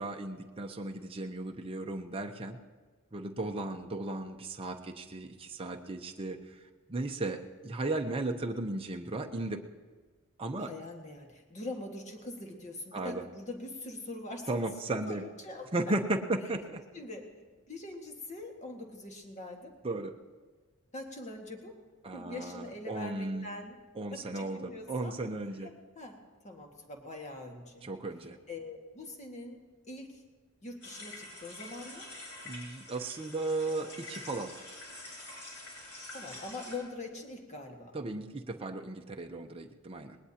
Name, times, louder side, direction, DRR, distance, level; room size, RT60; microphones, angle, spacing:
voice 1, 0.0-2.6 3.1-6.6 6.9-9.6 10.4-10.7 12.9-13.2 14.5-15.2 15.7-16.8 19.8-20.1 22.0-23.5 24.0-25.7 27.8-28.4 32.4-34.5 37.9-40.2, right 2 dB, 25° right, 2 dB, 0.7 m, -35 dB
voice 2, 10.6-14.5 15.1-15.7 16.9-17.2 17.7-19.7 20.9-21.8 22.1-23.8 24.1-25.2 25.6-26.2 26.4-27.9 28.5-29.6 29.9-30.2 30.6-32.0 36.1-37.9, left 2 dB, 35° left, 2 dB, 1.8 m, -43 dB
sound 1, 30.8-36.8, left 2 dB, 85° left, 5.8 m, -46 dB
20.0 x 19.5 x 2.9 m, 1.4 s
head